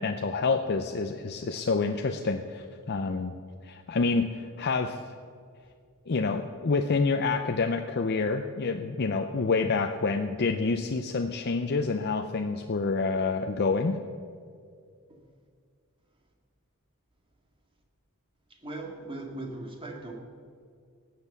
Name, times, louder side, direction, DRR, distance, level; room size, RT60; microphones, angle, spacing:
voice 1, 0.0-3.3 3.6-5.0 6.1-14.0, left 4 dB, 45° left, 6 dB, 0.6 m, -28 dB
voice 2, 18.6-20.1, right 2 dB, 25° right, 1 dB, 2.0 m, -39 dB
18.5 x 7.9 x 6.9 m, 2.2 s
head